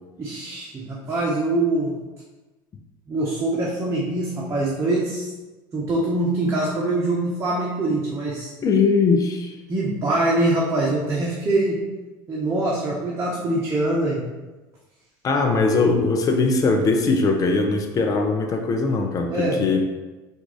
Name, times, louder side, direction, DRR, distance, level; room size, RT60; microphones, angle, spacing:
voice 1, 0.2-1.9 3.1-5.3 5.7-8.5 9.7-11.8 12.3-14.2 19.3-19.6, right 2 dB, 30° right, -6 dB, 1.0 m, -23 dB
voice 2, 8.6-9.5 15.2-19.8, left 3 dB, 35° left, 4 dB, 0.6 m, -20 dB
4.5 x 2.6 x 3.9 m, 1.2 s
supercardioid pair, 90°, 10 cm